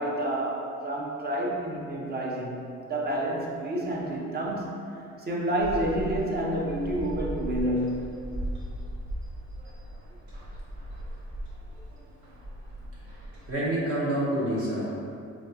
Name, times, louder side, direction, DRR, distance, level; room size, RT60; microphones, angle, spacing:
voice 1, 0.0-4.7 5.2-8.1, right 1 dB, 35° right, -2 dB, 0.6 m, -29 dB
sound 1, 5.6-13.5, right 1 dB, 70° right, 0.9 m, -38 dB
voice 2, 13.5-15.0, right 1 dB, 50° right, -7 dB, 1.1 m, -27 dB
3.4 x 2.4 x 2.7 m, 2.5 s
cardioid pair, 90°, 30 cm